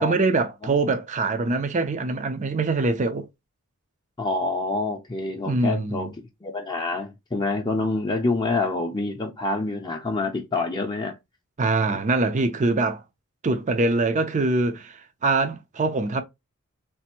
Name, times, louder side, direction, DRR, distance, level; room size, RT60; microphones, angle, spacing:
voice 1, 0.0-3.3 5.5-6.1 11.6-13.0 13.4-16.2, right 3 dB, 35° right, 0.5 m, -23 dB
voice 2, 4.2-6.1 6.4-11.1 11.9-12.0, left 2 dB, 20° left, 0.6 m, -27 dB
3.3 x 2.5 x 2.9 m
head